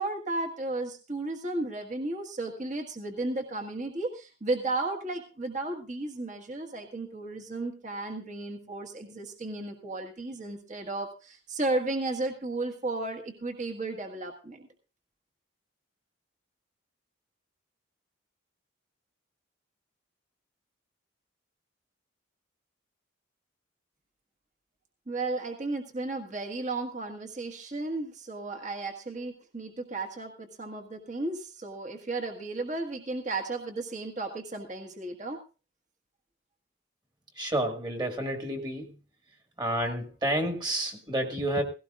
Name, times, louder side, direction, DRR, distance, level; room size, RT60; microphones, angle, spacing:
voice 1, 0.0-14.7 25.1-35.4, right 2 dB, 35° right, 4 dB, 1.6 m, -34 dB
voice 2, 37.4-38.9 39.6-41.6, right 1 dB, 20° right, 4 dB, 1.8 m, -30 dB
17.5 x 16.5 x 2.5 m, 0.33 s
head